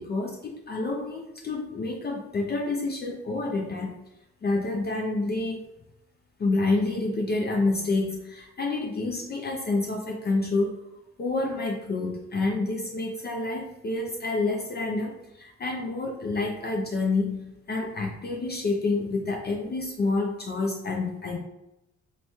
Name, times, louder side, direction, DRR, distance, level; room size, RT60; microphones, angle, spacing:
voice 1, 0.0-3.9 4.4-5.7 6.4-10.8 11.2-21.4, left 3 dB, 35° left, 0 dB, 0.5 m, -28 dB
3.0 x 2.3 x 4.2 m, 0.92 s
cardioid pair, 90°, 30 cm